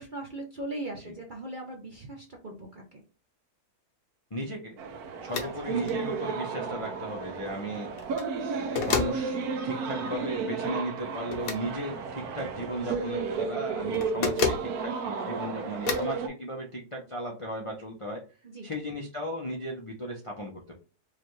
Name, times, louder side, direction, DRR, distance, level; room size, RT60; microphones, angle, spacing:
voice 1, 0.0-3.0 14.3-14.6 18.4-18.7, right 1 dB, 50° right, 1 dB, 0.6 m, -39 dB
voice 2, 4.3-4.8 5.2-7.9 8.6-18.2 18.6-20.7, equal, 40° left, -1 dB, 0.4 m, -36 dB
sound 1, 4.8-16.3, right 5 dB, 75° right, 1.2 m, -33 dB
sound 2, 5.3-5.5 5.9-6.0 7.9-8.3 8.8-9.2 11.3-11.6 13.9-14.7 15.9-16.1, left 6 dB, 65° left, 1.2 m, -29 dB
4.9 x 2.4 x 3.0 m, 0.34 s
omnidirectional pair, 1.7 m